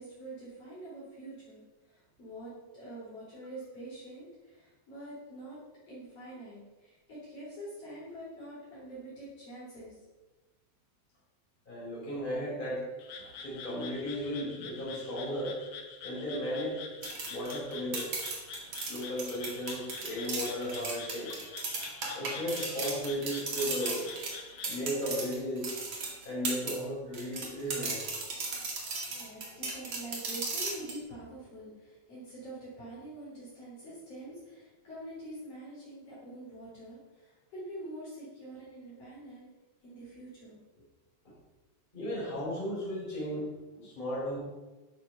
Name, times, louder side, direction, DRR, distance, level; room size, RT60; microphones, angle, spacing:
voice 1, 0.0-5.6 5.9-10.0 29.1-39.5 39.8-40.8, right 1 dB, 40° left, -7 dB, 4.5 m, -45 dB
voice 2, 11.7-12.8 13.2-15.6 16.0-16.8 17.3-18.5 18.9-21.3 22.1-24.1 24.7-25.7 26.2-28.0 41.9-43.5 43.8-44.4, equal, 10° left, -6 dB, 4.4 m, -35 dB
Frog, 13.0-24.7, left 5 dB, 65° left, 1.7 m, -46 dB
sound 1, 17.0-26.8 27.1-31.0, right 3 dB, 40° right, 2.1 m, -36 dB
11.5 x 7.3 x 5.7 m, 1.1 s
omnidirectional pair, 4.3 m